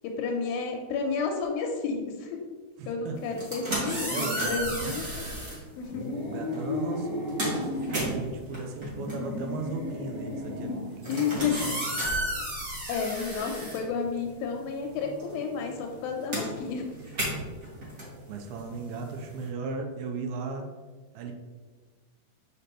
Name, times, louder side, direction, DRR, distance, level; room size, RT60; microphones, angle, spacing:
voice 1, 0.0-2.4 2.9-5.1 5.8-6.0 11.1-11.8 12.9-16.9, left 5 dB, 80° left, 3 dB, 2.4 m, -31 dB
voice 2, 2.8-3.4 4.1-5.0 6.2-11.8 18.3-20.7 21.1-21.3, right 4 dB, 85° right, 3 dB, 2.5 m, -37 dB
sound 1, 3.2-5.6 6.5-6.7 7.0-14.5 14.8-19.5, right 1 dB, 35° right, 1.4 m, -33 dB
sound 2, 5.8-8.2 8.7-11.0, left 2 dB, 60° left, 0.8 m, -34 dB
6.7 x 5.2 x 2.9 m, 1.4 s
omnidirectional pair, 4.3 m